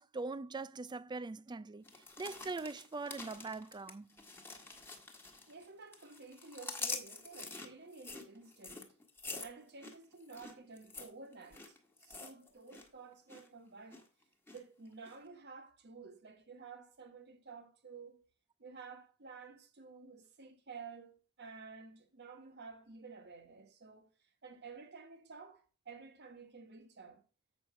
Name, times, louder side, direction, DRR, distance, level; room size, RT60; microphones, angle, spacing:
voice 1, 0.0-4.1, right 3 dB, 20° right, 0.3 m, -42 dB
sound 1, 1.8-5.7 5.9-12.9 13.1-13.5 13.9-14.6 15.0-15.1, left 3 dB, 10° left, 1.5 m, -46 dB
voice 2, 5.5-8.9 9.4-14.0 14.5-18.3 18.6-27.2, right 4 dB, 50° right, 1.4 m, -52 dB
7.8 x 6.2 x 4.9 m
head